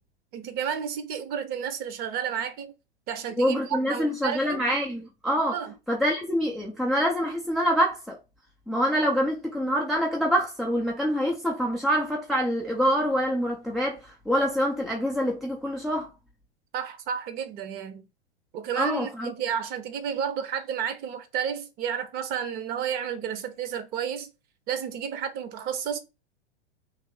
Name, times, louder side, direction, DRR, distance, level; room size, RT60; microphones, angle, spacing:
voice 1, 0.3-2.7 3.1-4.6 5.5-5.7 16.7-18.1 18.5-24.3 24.7-26.0, right 8 dB, 30° right, 0.8 m, -31 dB
voice 2, 3.4-5.6 5.9-8.2 8.7-16.1 18.8-19.3, equal, ahead, 0.4 m, -26 dB
3.3 x 2.9 x 4.5 m
figure-of-eight pair, 100°, 33 cm